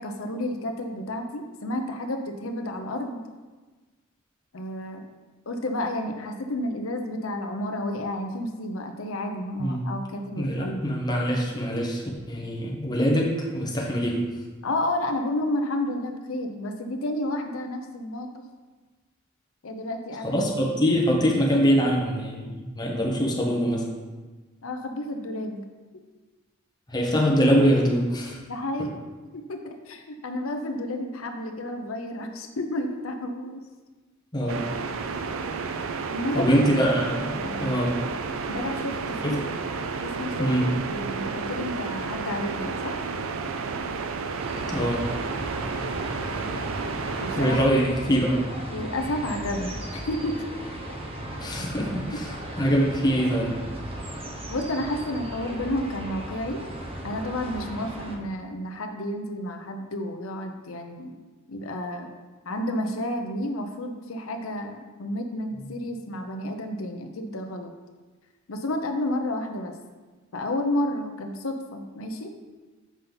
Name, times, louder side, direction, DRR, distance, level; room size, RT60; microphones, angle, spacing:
voice 1, 0.0-3.2 4.5-5.0 5.5-10.9 14.6-18.5 19.6-20.4 24.6-25.6 28.5-29.0 29.3-33.6 36.1-36.5 37.3-37.8 38.5-39.4 40.0-43.0 47.2-47.6 48.7-50.5 52.1-52.2 54.5-56.7 57.0-61.1 61.5-62.1 62.4-67.7 68.5-69.8 70.3-72.3, left 1 dB, 75° left, 5 dB, 0.7 m, -31 dB
voice 2, 10.4-14.3 20.2-23.8 26.9-28.4 34.3-34.6 36.3-38.0 39.2-39.4 40.4-40.7 44.7-45.0 47.4-48.4 51.4-52.2 52.6-53.5, equal, 20° left, -2 dB, 1.2 m, -23 dB
sound 1, 34.5-47.7, right 4 dB, 70° right, 0.4 m, -31 dB
sound 2, 44.4-58.2, right 1 dB, 30° right, 0.9 m, -36 dB
7.4 x 5.4 x 3.9 m, 1.3 s
head